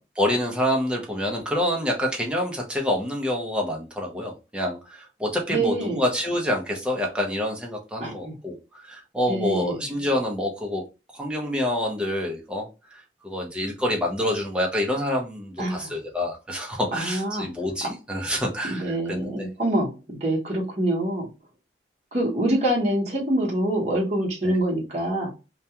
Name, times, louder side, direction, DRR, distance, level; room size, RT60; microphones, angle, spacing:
voice 1, 0.2-10.8 11.1-19.3 24.4-24.6, left 1 dB, 5° right, -1 dB, 0.6 m, -27 dB
voice 2, 5.5-6.0 8.0-8.4 9.3-9.9 15.6-15.9 16.9-17.5 18.6-21.3 22.1-25.3, right 1 dB, 35° right, -3 dB, 0.9 m, -25 dB
2.3 x 2.2 x 2.8 m, 0.29 s
head